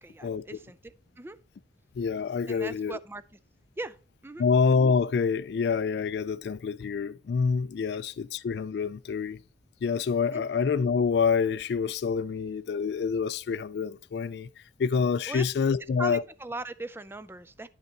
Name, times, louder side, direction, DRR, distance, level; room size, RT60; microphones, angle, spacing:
voice 1, 0.0-1.4 2.5-3.2 3.8-4.0 4.2-4.5 10.3-10.5 15.3-15.4 16.0-17.7, right 2 dB, 15° right, 0.4 m, -39 dB
voice 2, 2.0-3.0 4.4-9.4 9.8-14.5 14.8-16.2, left 5 dB, 65° left, 0.3 m, -27 dB
10.0 x 5.4 x 3.9 m
head